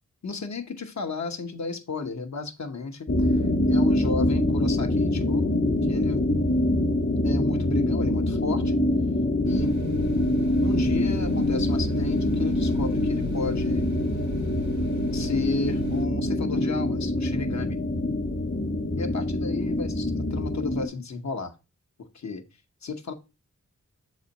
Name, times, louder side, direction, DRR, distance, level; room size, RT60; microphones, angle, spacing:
voice 1, 0.2-3.4 3.7-5.5 5.9-6.2 7.2-8.8 9.5-9.7 10.6-13.9 15.1-17.8 19.0-21.5 22.1-22.4 22.8-23.1, left 4 dB, 70° left, 5 dB, 1.0 m, -33 dB
sound 1, 3.1-20.9, left 1 dB, 45° left, 1.0 m, -25 dB
sound 2, 9.4-16.1, right 4 dB, 80° right, 1.8 m, -37 dB
6.7 x 4.2 x 4.0 m, 0.27 s
wide cardioid pair, 100°, 29 cm